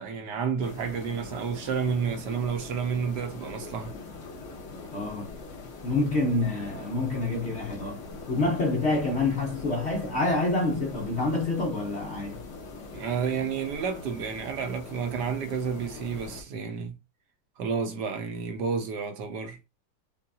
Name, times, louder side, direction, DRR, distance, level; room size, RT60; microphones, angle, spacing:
voice 1, 0.0-3.9 12.9-16.9 17.6-19.6, right 6 dB, 70° right, 1.0 m, -30 dB
sound 1, 0.6-16.4, left 3 dB, 50° left, 0.9 m, -42 dB
voice 2, 4.9-5.3 5.8-12.5, left 2 dB, 75° left, 0.6 m, -27 dB
5.5 x 2.3 x 2.6 m
omnidirectional pair, 2.3 m